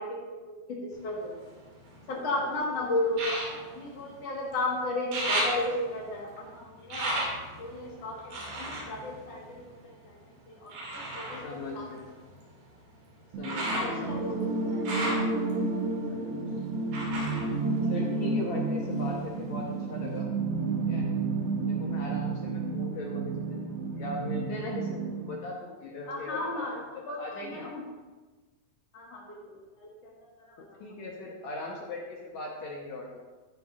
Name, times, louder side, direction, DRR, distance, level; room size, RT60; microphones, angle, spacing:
voice 1, 0.0-1.3 2.1-7.3 7.6-10.1 10.5-11.9 13.6-14.4 14.7-14.8 26.1-26.8 27.1-27.2 27.5-27.8 28.9-30.1 30.5-30.6, left 2 dB, 50° left, -3 dB, 2.2 m, -34 dB
sound 1, 0.9-2.3 3.1-4.6 4.9-10.1 10.7-18.5 18.9-19.7 20.2-20.3, right 1 dB, 65° right, 4.2 m, -36 dB
voice 2, 2.4-2.8 11.4-12.1 13.4-14.5 16.1-16.6 17.8-20.3 20.7-21.1 21.7-23.6 23.9-26.8 27.2-27.7 30.8-33.2, left 2 dB, 70° left, -2 dB, 1.8 m, -39 dB
sound 2, 13.3-25.3, right 3 dB, 80° right, 3.2 m, -31 dB
14.0 x 9.8 x 2.6 m, 1.3 s
omnidirectional pair, 4.6 m